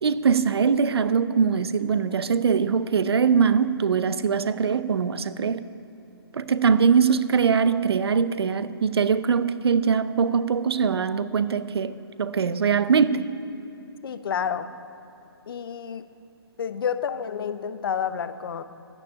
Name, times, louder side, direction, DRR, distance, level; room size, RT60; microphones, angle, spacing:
voice 1, 0.0-5.7 6.3-11.9 12.2-13.3, right 6 dB, 75° right, 14 dB, 0.8 m, -22 dB
voice 2, 14.0-14.7 15.5-16.0 16.6-18.6, left 7 dB, 60° left, 11 dB, 0.9 m, -29 dB
13.5 x 9.9 x 8.7 m, 2.9 s
hypercardioid pair, 140°, 13 cm